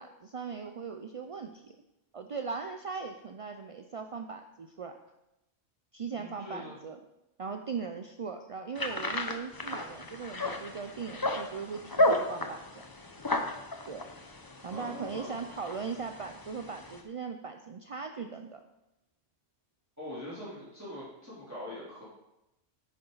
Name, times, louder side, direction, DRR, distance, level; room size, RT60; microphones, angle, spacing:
voice 1, 0.0-1.8 2.1-5.0 5.9-7.0 7.4-12.6 13.8-14.1 14.6-18.6, right 5 dB, 55° right, 6 dB, 0.4 m, -39 dB
voice 2, 6.1-6.7 14.7-15.5 20.0-22.0, left 1 dB, 15° right, -9 dB, 3.3 m, -42 dB
sound 1, 8.8-17.0, left 1 dB, 20° left, 0.7 m, -33 dB
10.0 x 9.6 x 4.0 m, 0.92 s
omnidirectional pair, 1.3 m